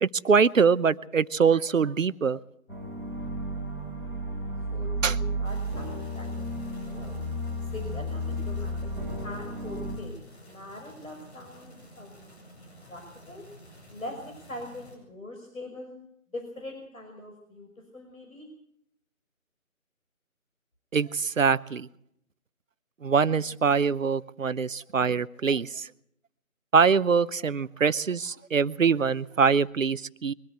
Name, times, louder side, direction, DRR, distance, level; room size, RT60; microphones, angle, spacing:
voice 1, 0.0-2.4 5.0-5.2 20.9-21.9 23.0-25.9 26.7-30.3, right 5 dB, 65° right, 17 dB, 0.9 m, -23 dB
sound 1, 2.7-10.0, equal, 5° left, 4.0 m, -33 dB
voice 2, 4.7-7.2 7.7-8.9 9.2-10.1 10.4-12.3 12.9-13.5 13.9-15.9 16.3-17.7 17.9-18.5, left 1 dB, 70° left, 3 dB, 5.7 m, -42 dB
sound 2, 5.4-15.0, equal, 50° left, 7.8 m, -51 dB
23.0 x 14.0 x 8.2 m, 0.73 s
figure-of-eight pair, 160°, 42 cm